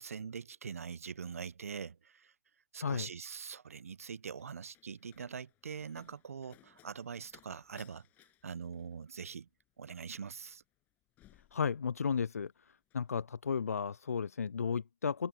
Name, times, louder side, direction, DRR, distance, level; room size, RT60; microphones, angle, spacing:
voice 1, 0.0-2.3 2.7-8.0 8.4-9.5 9.8-10.6, right 6 dB, 75° right, 0.8 m, -43 dB
Slam, 3.9-12.3 12.6-13.1, left 15 dB, 20° left, 7.3 m, -66 dB
voice 2, 11.5-12.5 12.9-15.3, left 6 dB, 85° left, 0.4 m, -33 dB
open air
hypercardioid pair, 145°, 8 cm